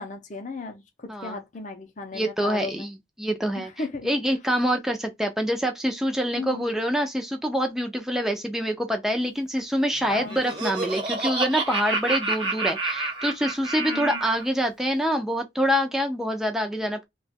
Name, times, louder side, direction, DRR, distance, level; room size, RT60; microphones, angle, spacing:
voice 1, 0.0-2.9 3.6-4.2 6.4-6.6 10.1-10.4 13.9-14.2, left 3 dB, 40° left, 0.6 m, -35 dB
voice 2, 1.1-1.4 2.1-3.7 4.0-17.0, equal, ahead, 0.5 m, -26 dB
Laughter, 10.0-14.4, right 2 dB, 25° right, 0.8 m, -29 dB
3.0 x 2.3 x 4.1 m
head